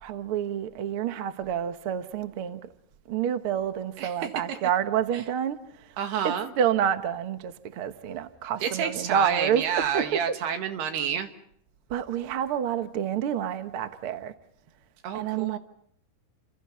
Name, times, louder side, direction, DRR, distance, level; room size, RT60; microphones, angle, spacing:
voice 1, 0.0-2.7 3.1-6.0 6.2-9.6 9.9-10.2 11.9-14.3 15.1-15.6, right 9 dB, 70° right, 1.3 m, -28 dB
voice 2, 6.0-6.5 8.6-11.3 15.0-15.6, right 8 dB, 85° right, 3.8 m, -29 dB
29.5 x 27.0 x 5.7 m
omnidirectional pair, 4.5 m